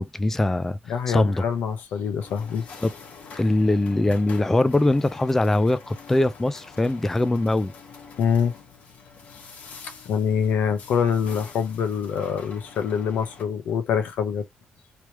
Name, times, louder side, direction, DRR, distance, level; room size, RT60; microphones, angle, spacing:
voice 1, 0.0-0.8 1.1-1.4 2.8-2.9 3.4-7.7, left 2 dB, 10° left, 0.3 m, -22 dB
voice 2, 0.9-2.6 8.2-8.6 10.0-14.5, left 7 dB, 85° left, 0.9 m, -25 dB
sound 1, 2.2-13.4, left 5 dB, 60° left, 1.2 m, -45 dB
3.3 x 3.1 x 2.9 m
cardioid pair, 140°, 3 cm